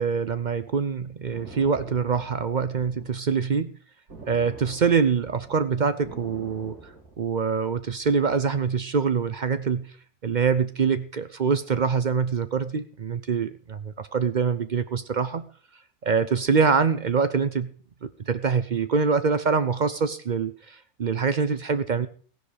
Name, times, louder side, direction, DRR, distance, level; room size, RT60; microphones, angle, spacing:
voice 1, 0.0-3.7 4.3-6.9 7.2-10.0 10.2-15.4 16.0-17.7 18.0-22.1, right 5 dB, 55° right, 12 dB, 0.5 m, -24 dB
sound 1, 1.1-3.2 4.1-7.4, right 2 dB, 75° right, 3.6 m, -44 dB
15.5 x 10.0 x 5.1 m, 0.44 s
omnidirectional pair, 1.6 m